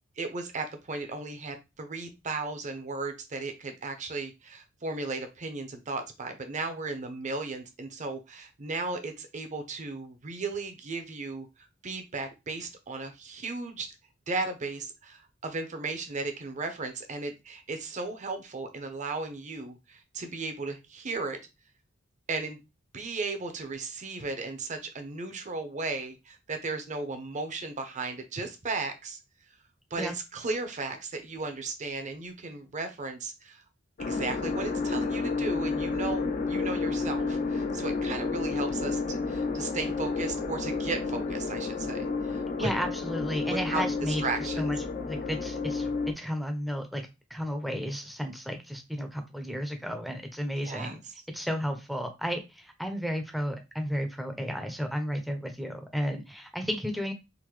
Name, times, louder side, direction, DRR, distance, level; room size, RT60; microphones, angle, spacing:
voice 1, 0.2-11.5 11.8-13.9 14.3-21.4 22.3-22.6 22.9-29.2 29.9-33.6 34.0-42.7 43.5-44.7 50.6-51.0, right 3 dB, 40° right, 7 dB, 0.7 m, -35 dB
sound 1, 34.0-46.1, left 4 dB, 40° left, 0.5 m, -31 dB
voice 2, 42.6-44.2 44.6-44.8 45.1-45.9 46.2-47.0 47.3-51.0 51.3-57.1, equal, ahead, 5 dB, 0.6 m, -33 dB
3.8 x 2.6 x 3.1 m, 0.25 s
head